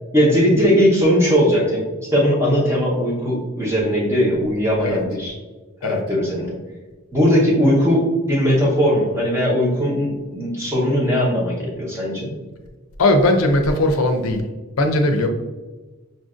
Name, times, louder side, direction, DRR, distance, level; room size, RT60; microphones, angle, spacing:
voice 1, 0.1-5.3 5.8-6.5 7.1-12.3, equal, 15° right, -5 dB, 0.9 m, -19 dB
voice 2, 13.0-14.4 14.8-15.3, left 1 dB, 75° left, 5 dB, 0.5 m, -18 dB
5.4 x 2.6 x 2.5 m, 1.2 s
head